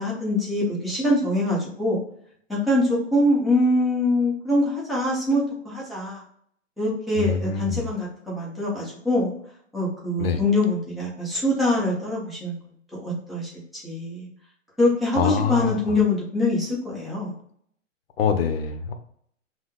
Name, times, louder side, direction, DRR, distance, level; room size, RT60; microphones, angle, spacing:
voice 1, 0.0-2.0 2.5-6.2 6.8-9.3 9.7-12.6 13.0-14.3 14.8-17.3, left 1 dB, ahead, -6 dB, 0.5 m, -24 dB
voice 2, 7.2-7.9 10.2-10.4 15.1-15.7 18.2-18.9, left 6 dB, 50° left, 7 dB, 0.7 m, -24 dB
5.2 x 2.8 x 2.2 m, 0.66 s
hypercardioid pair, 130°, 39 cm